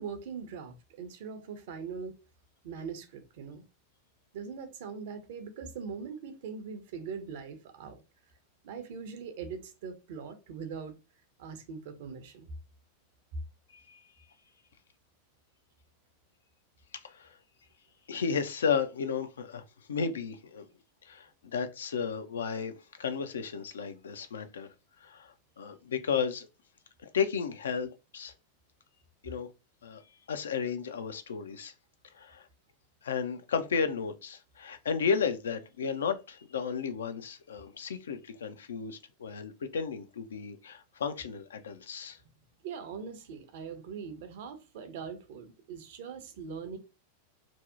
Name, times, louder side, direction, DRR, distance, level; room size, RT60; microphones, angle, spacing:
voice 1, 0.0-2.2 2.6-3.6 4.3-8.0 8.6-11.0 11.4-12.5 42.6-46.8, right 6 dB, 55° right, 0.5 m, -41 dB
voice 2, 17.0-17.4 18.1-20.7 21.0-24.7 25.0-26.5 27.1-28.3 29.2-29.5 29.8-30.0 30.3-31.7 32.1-32.5 33.0-42.2, left 6 dB, 65° left, 0.3 m, -33 dB
2.6 x 2.0 x 2.3 m
figure-of-eight pair, 90°, 0 cm